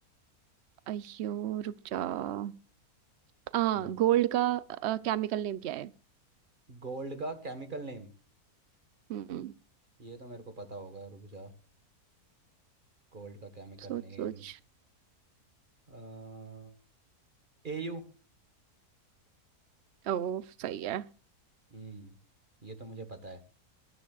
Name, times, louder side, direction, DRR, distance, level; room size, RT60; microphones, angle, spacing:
voice 1, 0.9-2.5 3.5-5.9 9.1-9.5 13.8-14.6 20.0-21.0, right 12 dB, 55° right, 0.8 m, -31 dB
voice 2, 6.7-8.1 10.0-11.5 13.1-14.4 15.9-16.7 17.6-18.0 21.7-22.1 22.6-23.4, right 3 dB, 35° right, 1.7 m, -42 dB
23.0 x 11.0 x 2.4 m
omnidirectional pair, 1.6 m